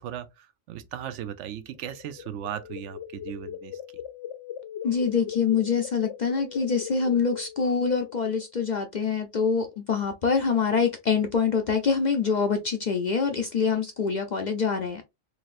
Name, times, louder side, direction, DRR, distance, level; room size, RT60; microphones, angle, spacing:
voice 1, 0.0-3.8, right 10 dB, 75° right, 0.9 m, -37 dB
sound 1, 1.7-8.4, left 9 dB, 80° left, 1.0 m, -40 dB
voice 2, 4.8-15.0, left 5 dB, 55° left, 0.5 m, -25 dB
4.0 x 3.1 x 2.4 m
omnidirectional pair, 1.2 m